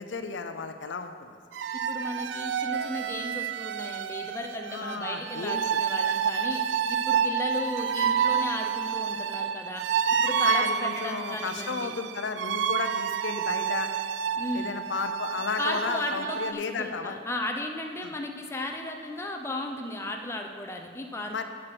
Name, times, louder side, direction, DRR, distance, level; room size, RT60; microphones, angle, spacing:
voice 1, 0.0-1.4 4.7-5.6 10.4-13.9 14.5-17.2 18.0-18.1 21.3-21.4, left 5 dB, 75° left, 8 dB, 0.5 m, -33 dB
sound 1, 1.5-16.5, right 7 dB, 70° right, 0.3 m, -29 dB
voice 2, 1.9-9.8 10.2-12.0 14.4-14.7 15.6-21.4, left 1 dB, 15° left, 3 dB, 0.6 m, -35 dB
7.6 x 6.4 x 6.0 m, 2.1 s
head